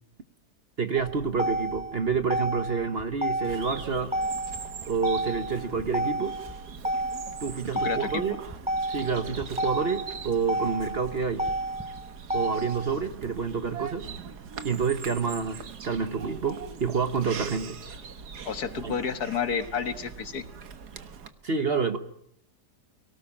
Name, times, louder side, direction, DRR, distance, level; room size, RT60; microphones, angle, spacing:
voice 1, 0.8-4.1 4.9-6.4 7.4-8.4 8.9-11.5 12.3-14.1 14.6-17.8 18.8-18.9 21.4-22.0, right 5 dB, 40° right, 9 dB, 1.2 m, -28 dB
Motor vehicle (road), 1.0-12.9, right 1 dB, 5° right, 0.7 m, -31 dB
Bird vocalization bird call bird song, 3.4-21.3, right 6 dB, 70° right, 1.9 m, -42 dB
voice 2, 7.8-8.2 18.5-20.4, left 6 dB, 65° left, 10 dB, 1.9 m, -30 dB
24.5 x 18.0 x 8.7 m, 0.70 s
omnidirectional pair, 1.8 m